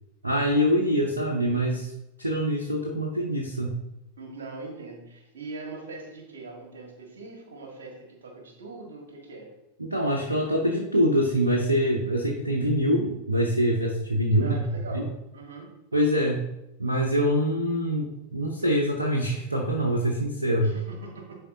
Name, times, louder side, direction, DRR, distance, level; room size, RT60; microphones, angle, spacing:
voice 1, 0.2-1.9 2.2-3.7 9.8-14.6 14.9-15.0 15.9-16.4 16.8-20.7, equal, 80° right, 0 dB, 0.8 m, -24 dB
voice 2, 4.2-9.5 14.3-15.9 20.6-21.4, right 3 dB, 65° right, 1 dB, 1.6 m, -42 dB
10.0 x 4.5 x 2.7 m, 0.88 s
figure-of-eight pair, 90°, 0 cm